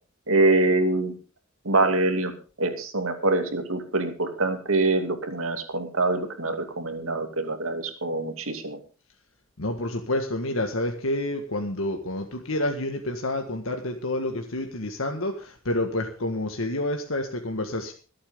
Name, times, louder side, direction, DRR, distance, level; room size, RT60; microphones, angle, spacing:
voice 1, 0.3-1.2 1.6-8.8, right 2 dB, 90° right, 6 dB, 2.6 m, -25 dB
voice 2, 9.6-17.9, left 1 dB, 80° left, 4 dB, 1.7 m, -29 dB
25.0 x 8.7 x 3.8 m, 0.35 s
head